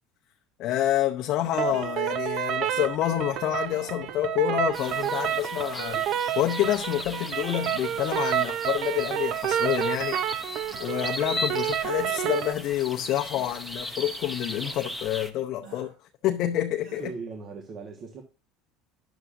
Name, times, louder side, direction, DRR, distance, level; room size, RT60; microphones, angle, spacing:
voice 1, 0.6-10.2 10.8-15.9 16.2-17.1, left 13 dB, 55° left, 0.6 m, -28 dB
sound 1, 1.5-12.5, right 10 dB, 55° right, 0.6 m, -29 dB
sound 2, 1.7-2.1 2.7-3.0 3.7-3.9 4.7-5.2 5.9-6.2 7.0-7.4 8.4-8.5 9.4-9.8 10.7-11.2 12.0-12.4 13.3-13.6 14.5-14.8 15.6-15.9 16.8-17.2, right 5 dB, 75° right, 5.3 m, -47 dB
sound 3, 4.7-15.3, left 1 dB, ahead, 0.9 m, -38 dB
voice 2, 16.9-18.2, right 4 dB, 40° right, 1.4 m, -38 dB
10.0 x 7.0 x 2.6 m
supercardioid pair, 125°, 0 cm